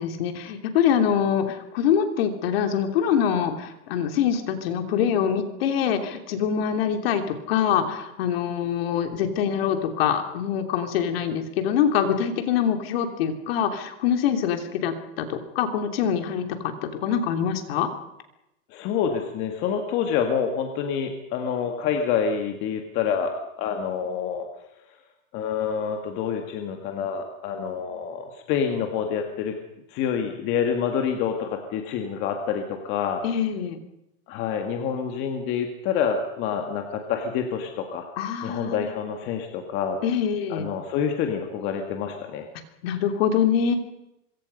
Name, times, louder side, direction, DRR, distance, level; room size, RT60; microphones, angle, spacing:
voice 1, 0.0-17.9 33.2-33.8 38.2-38.9 40.0-40.7 42.8-43.7, left 8 dB, 45° left, 7 dB, 3.1 m, -24 dB
voice 2, 18.7-24.5 25.3-29.6 29.9-33.2 34.3-38.1 38.4-40.0 40.5-42.5, left 7 dB, 25° left, 4 dB, 2.0 m, -27 dB
25.5 x 23.5 x 5.4 m, 0.86 s
supercardioid pair, 170°, 41 cm